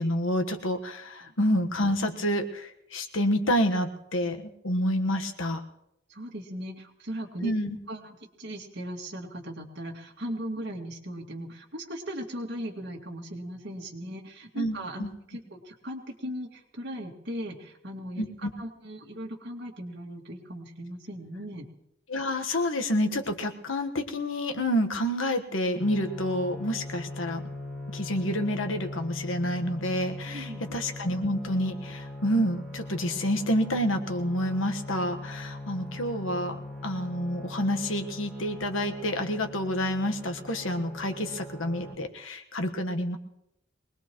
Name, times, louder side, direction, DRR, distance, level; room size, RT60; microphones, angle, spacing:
voice 1, 0.0-5.6 7.4-7.8 14.5-15.1 18.2-18.5 22.1-27.4 27.9-43.2, equal, 85° left, 6 dB, 1.4 m, -28 dB
voice 2, 6.1-7.5 7.9-21.7 30.3-30.7, equal, 60° right, 0 dB, 2.3 m, -38 dB
sound 1, 25.8-41.9, left 2 dB, 5° left, 1.5 m, -40 dB
23.5 x 19.5 x 3.1 m, 0.80 s
head